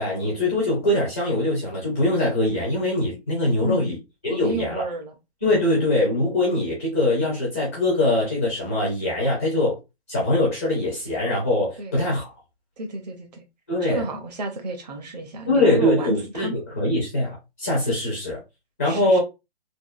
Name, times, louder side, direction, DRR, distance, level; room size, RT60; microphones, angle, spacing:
voice 1, 0.0-4.0 4.2-4.8 5.4-9.8 10.1-12.3 13.7-14.0 15.5-18.4 18.8-19.2, left 1 dB, 10° left, 0.4 m, -22 dB
voice 2, 3.6-4.0 4.3-5.2 11.8-11.9 12.8-13.4 13.8-16.6 18.8-19.2, right 2 dB, 40° right, 0.6 m, -31 dB
3.5 x 2.3 x 2.3 m
hypercardioid pair, 155°, 33 cm